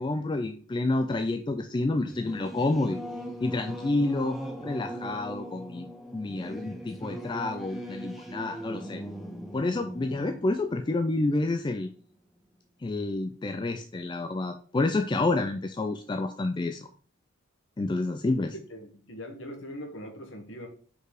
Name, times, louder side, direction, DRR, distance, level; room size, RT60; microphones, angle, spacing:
voice 1, 0.0-3.0 3.4-5.9 6.1-9.0 9.5-11.9 12.8-16.9 17.8-18.5, left 2 dB, 20° left, 7 dB, 0.3 m, -29 dB
Singing / Musical instrument, 1.9-12.0, equal, ahead, 0.8 m, -40 dB
voice 2, 18.5-20.7, equal, 65° left, 4 dB, 1.4 m, -41 dB
5.3 x 4.1 x 4.8 m, 0.43 s
head